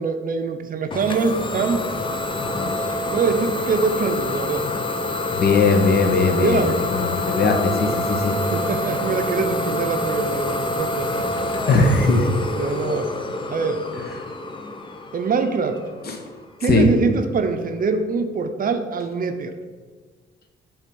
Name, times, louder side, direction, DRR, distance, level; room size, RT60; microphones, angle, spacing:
voice 1, 0.0-1.9 3.1-4.7 6.4-6.8 8.5-11.3 12.6-13.1 13.5-13.8 15.1-15.8 16.6-19.5, right 4 dB, 45° right, 7 dB, 0.6 m, -23 dB
Idling / Domestic sounds home sounds, 0.9-16.4, left 2 dB, 25° left, 0.6 m, -27 dB
voice 2, 5.3-8.4 11.7-12.3 16.1-16.2 16.7-16.9, left 3 dB, 55° left, 4 dB, 1.0 m, -19 dB
7.4 x 3.6 x 5.3 m, 1.5 s
cardioid pair, 90°, 20 cm